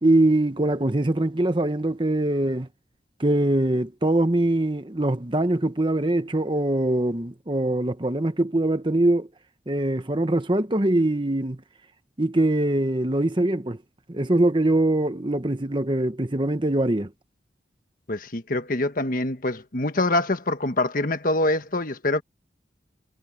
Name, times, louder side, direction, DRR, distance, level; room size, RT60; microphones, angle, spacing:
voice 1, 0.0-2.7 3.2-9.3 9.7-11.6 12.2-13.8 14.1-17.1, right 1 dB, 25° right, 1.1 m, -23 dB
voice 2, 18.1-22.2, left 2 dB, 50° left, 1.4 m, -25 dB
head